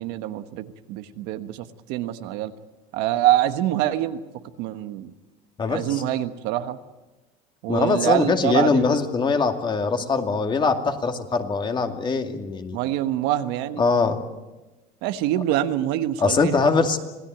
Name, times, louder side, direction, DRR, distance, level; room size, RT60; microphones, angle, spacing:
voice 1, 0.0-2.5 2.9-4.2 4.6-5.1 5.7-6.8 7.6-8.8 12.7-13.8 15.0-16.5, right 13 dB, 75° right, 9 dB, 1.4 m, -25 dB
voice 2, 7.7-12.8 13.8-14.2 16.2-17.0, left 4 dB, 30° left, 5 dB, 2.3 m, -22 dB
26.5 x 17.0 x 9.2 m, 1.1 s
cardioid pair, 125°, 17 cm